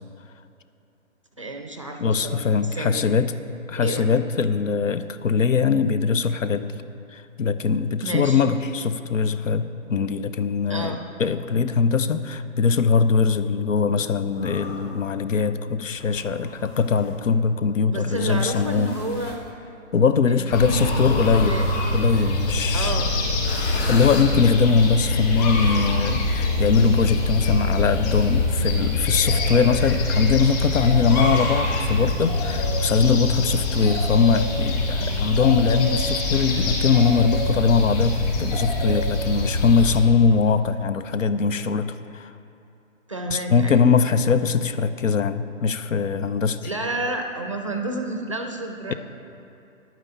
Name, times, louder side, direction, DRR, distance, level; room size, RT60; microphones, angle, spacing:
voice 1, 1.4-3.1 3.8-4.1 8.0-8.4 10.7-11.0 17.9-19.4 20.3-21.7 22.7-23.1 33.7-34.0 35.0-35.2 43.1-43.9 46.6-48.9, right 2 dB, 25° right, 3 dB, 0.5 m, -30 dB
voice 2, 2.0-3.3 3.7-6.8 7.1-19.0 19.9-21.6 21.9-23.0 23.5-42.3 43.3-46.6, left 5 dB, 65° left, 12 dB, 0.7 m, -21 dB
sound 1, 14.3-15.0 16.0-17.2 18.1-19.4 20.7-22.3 23.4-24.8, left 3 dB, 50° left, 1.6 m, -35 dB
sound 2, 20.5-40.0, left 2 dB, 30° left, 2.5 m, -24 dB
10.5 x 9.5 x 6.8 m, 2.7 s
hypercardioid pair, 165°, 41 cm